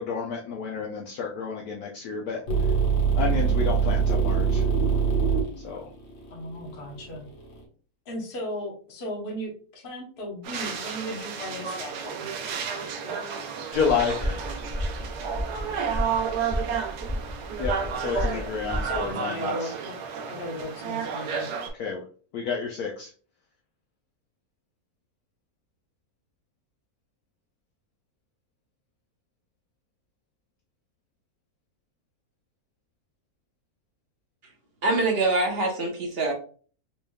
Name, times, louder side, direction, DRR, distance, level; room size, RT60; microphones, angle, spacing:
voice 1, 0.0-2.4 3.2-4.6 5.6-5.8 13.7-14.4 17.6-17.7 18.0-19.5 21.8-22.0 22.3-23.1, left 6 dB, 70° left, -1 dB, 1.1 m, -30 dB
sound 1, 2.5-7.6, right 6 dB, 90° left, 1.8 m, -24 dB
voice 2, 6.3-7.3 8.1-12.3 13.0-13.1 17.9-18.5 18.8-19.9 20.3-21.5, equal, 40° left, 0 dB, 1.0 m, -36 dB
sound 2, 10.4-21.7, right 6 dB, 75° right, 1.2 m, -32 dB
sound 3, 13.7-19.1, equal, 5° right, 0.5 m, -33 dB
voice 3, 34.8-36.3, right 2 dB, 45° right, 0 dB, 0.9 m, -24 dB
4.1 x 3.3 x 2.2 m, 0.41 s
omnidirectional pair, 1.8 m